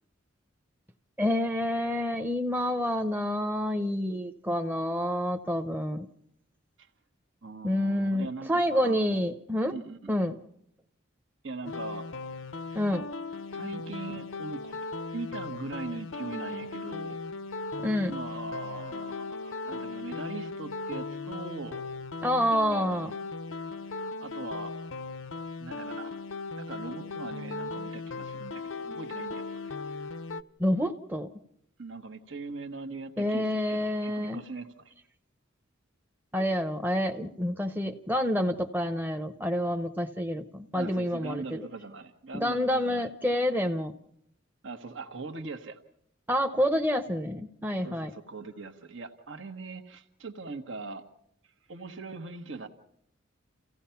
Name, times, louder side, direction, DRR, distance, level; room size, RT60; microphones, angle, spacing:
voice 1, 1.2-6.1 7.6-9.7 10.1-10.4 12.7-13.0 17.8-18.2 22.2-23.1 30.6-31.3 33.2-34.4 36.3-41.6 42.3-43.9 46.3-48.1, equal, 10° right, 4 dB, 0.7 m, -28 dB
voice 2, 7.4-9.1 9.7-10.1 11.4-12.1 12.7-12.8 13.5-14.8 15.1-17.2 18.1-21.8 23.8-23.9 24.2-24.7 25.6-26.2 26.6-29.6 31.8-34.9 40.7-43.1 44.6-45.8 47.8-51.0 51.4-52.7, right 3 dB, 80° right, 5 dB, 1.3 m, -41 dB
sound 1, 11.6-30.4, left 3 dB, 80° left, 0.7 m, -37 dB
29.0 x 16.0 x 5.7 m, 0.73 s
head